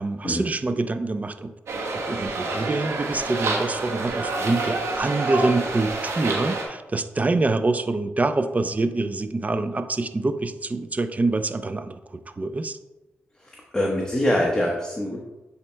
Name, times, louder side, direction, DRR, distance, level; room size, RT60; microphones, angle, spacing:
voice 1, 0.0-1.5 1.9-12.8, right 2 dB, 30° right, 9 dB, 0.5 m, -25 dB
sound 1, 1.7-6.6, right 3 dB, 75° right, 1.1 m, -28 dB
voice 2, 13.4-15.2, left 1 dB, 15° left, -2 dB, 1.1 m, -24 dB
10.0 x 4.2 x 2.2 m, 1.1 s
supercardioid pair, 50°, 5 cm